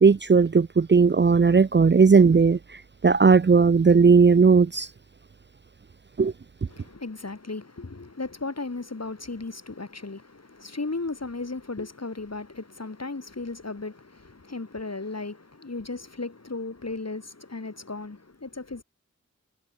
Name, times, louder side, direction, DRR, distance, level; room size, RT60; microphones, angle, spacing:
voice 1, 0.0-2.6 3.0-4.9 6.2-6.3, right 5 dB, 35° right, 0.5 m, -17 dB
voice 2, 6.7-18.8, left 3 dB, 55° left, 7.2 m, -35 dB
wide cardioid pair, 45°, 30 cm